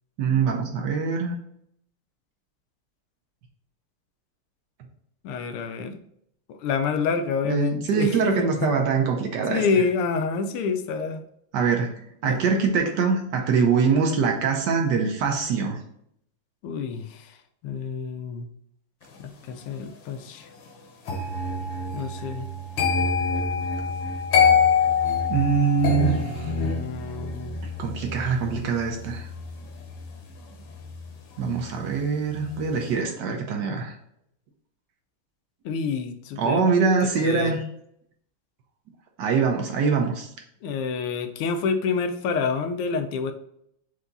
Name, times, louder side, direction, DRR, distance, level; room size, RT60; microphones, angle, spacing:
voice 1, 0.2-1.4 7.4-9.6 11.5-11.9 12.2-15.8 25.3-26.5 27.8-29.3 31.4-33.9 36.4-37.6 39.2-40.3, right 5 dB, 70° right, 3 dB, 1.0 m, -23 dB
voice 2, 5.2-6.0 6.5-8.7 9.5-11.2 12.2-12.4 16.6-17.4 17.6-18.5 19.2-20.5 21.9-22.5 26.0-27.6 35.6-36.7 37.2-37.6 40.6-43.3, left 5 dB, 85° left, 7 dB, 1.5 m, -28 dB
sound 1, 21.1-32.0 32.3-32.7, left 5 dB, 70° left, 1.5 m, -26 dB
4.7 x 2.7 x 3.8 m, 0.71 s
omnidirectional pair, 2.4 m